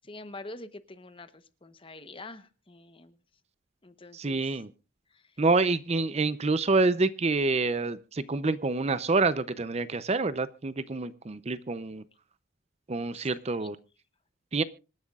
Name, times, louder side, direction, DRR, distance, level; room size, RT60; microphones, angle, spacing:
voice 1, 0.0-3.2 3.8-4.6 5.1-5.4 13.1-13.3 13.6-13.8, left 2 dB, 25° left, 12 dB, 0.9 m, -46 dB
voice 2, 4.1-4.7 5.4-12.0 12.9-13.8 14.5-14.6, right 3 dB, 30° right, 15 dB, 0.5 m, -27 dB
26.0 x 10.5 x 2.4 m, 0.33 s
head